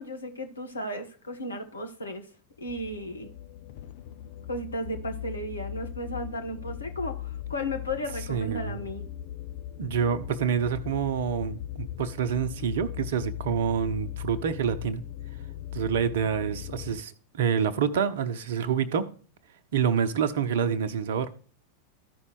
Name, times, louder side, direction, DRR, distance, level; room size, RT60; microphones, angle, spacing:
voice 1, 0.0-2.3 2.6-3.3 4.5-9.0, left 1 dB, 75° left, 1.3 m, -34 dB
sound 1, 2.6-17.0, left 12 dB, 50° left, 0.7 m, -39 dB
voice 2, 8.3-8.8 9.8-15.0 15.7-19.1 19.7-21.3, right 7 dB, 55° right, 0.9 m, -27 dB
14.5 x 5.5 x 3.0 m
figure-of-eight pair, 90°, 0 cm